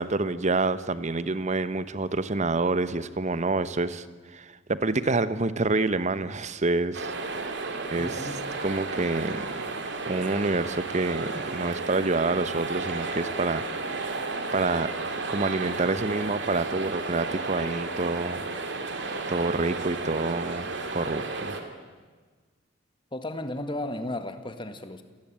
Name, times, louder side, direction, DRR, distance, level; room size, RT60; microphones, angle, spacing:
voice 1, 0.0-4.1 4.3-7.1 7.9-8.3 8.6-9.5 10.1-14.0 14.5-14.9 15.3-18.4 19.3-21.5, right 3 dB, 40° right, 14 dB, 1.0 m, -27 dB
sound 1, 6.9-21.6, right 3 dB, 65° right, 2.9 m, -33 dB
voice 2, 8.0-8.4 23.1-25.0, left 1 dB, 25° left, 9 dB, 1.8 m, -34 dB
28.5 x 18.0 x 8.9 m, 1.4 s
head